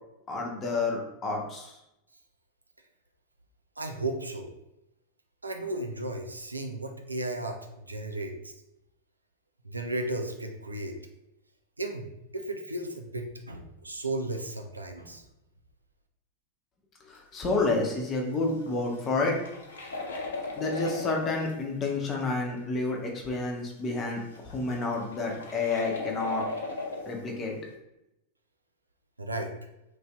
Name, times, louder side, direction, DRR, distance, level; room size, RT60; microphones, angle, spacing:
voice 1, 0.3-1.7 17.1-19.4 20.6-26.5 27.0-27.6, left 3 dB, 25° left, 0 dB, 0.8 m, -29 dB
voice 2, 3.8-4.5 5.4-8.5 9.6-11.0 11.8-15.2 29.2-29.5, right 2 dB, 80° right, 4 dB, 0.4 m, -34 dB
sound 1, 17.1-17.3 17.6-17.7 18.5-21.5 22.2-22.3 22.9-23.0 24.1-24.2 24.3-27.2, left 3 dB, 65° left, 0.5 m, -37 dB
3.2 x 2.7 x 3.4 m, 0.86 s
figure-of-eight pair, 90°, 0 cm